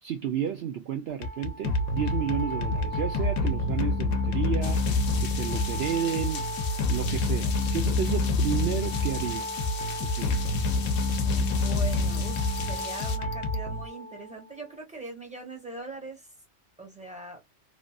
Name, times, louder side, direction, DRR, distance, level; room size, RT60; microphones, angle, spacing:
voice 1, 0.0-10.4, right 9 dB, 65° right, 0.7 m, -32 dB
sound 1, 1.1-14.3, left 2 dB, 90° left, 1.0 m, -27 dB
sound 2, 4.6-13.2, left 7 dB, 55° left, 0.8 m, -40 dB
voice 2, 11.1-16.3 16.8-17.4, right 3 dB, 5° right, 1.3 m, -41 dB
3.2 x 2.5 x 2.2 m
omnidirectional pair, 1.3 m